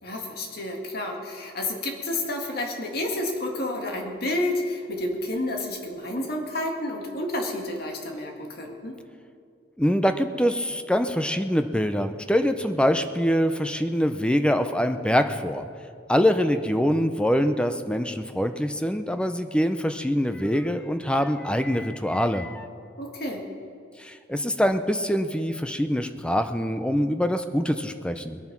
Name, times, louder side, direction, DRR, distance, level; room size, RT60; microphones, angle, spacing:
voice 1, 0.0-9.0 23.0-23.5, left 1 dB, 55° left, 2 dB, 2.0 m, -30 dB
voice 2, 9.8-15.7 16.1-22.7 24.0-28.4, equal, 5° left, 8 dB, 0.6 m, -24 dB
20.5 x 9.3 x 6.1 m, 2.3 s
head